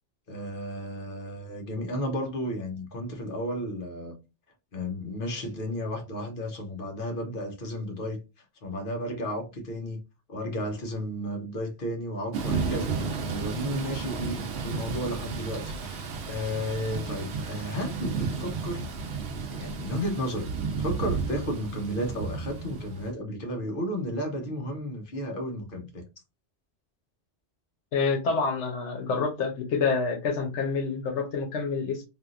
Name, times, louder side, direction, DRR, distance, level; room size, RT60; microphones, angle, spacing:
voice 1, 0.3-4.2 4.7-10.0 10.3-18.9 19.5-20.5 20.8-26.0, equal, 55° left, 1.0 m, -33 dB
Thunder / Rain, 12.3-23.1, right 5 dB, 70° right, 0.9 m, -33 dB
voice 2, 27.9-32.1, left 4 dB, 85° left, 1.2 m, -27 dB
3.4 x 2.6 x 2.4 m
omnidirectional pair, 1.2 m